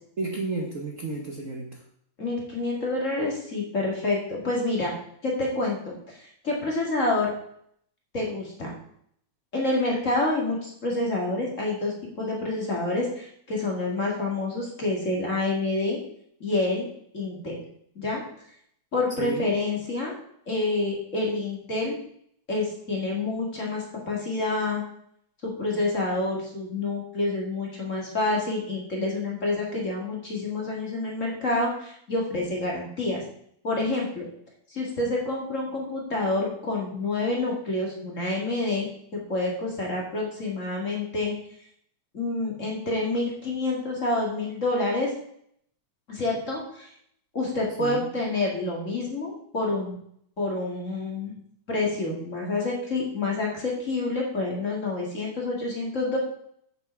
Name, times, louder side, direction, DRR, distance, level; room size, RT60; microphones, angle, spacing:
voice 1, 0.2-1.8 19.2-19.5 47.8-48.1, right 3 dB, 85° right, -1 dB, 0.7 m, -32 dB
voice 2, 2.2-4.9 5.2-7.3 8.1-8.7 9.5-16.0 16.4-16.9 17.1-17.6 18.0-18.2 18.9-20.1 20.5-21.9 22.5-24.8 25.4-33.2 33.6-34.3 34.7-38.9 39.3-41.3 42.1-45.1 46.1-46.9 47.3-50.0 50.4-51.3 51.7-56.2, left 2 dB, 30° left, -2 dB, 2.2 m, -28 dB
8.9 x 7.2 x 4.6 m, 0.68 s
omnidirectional pair, 3.3 m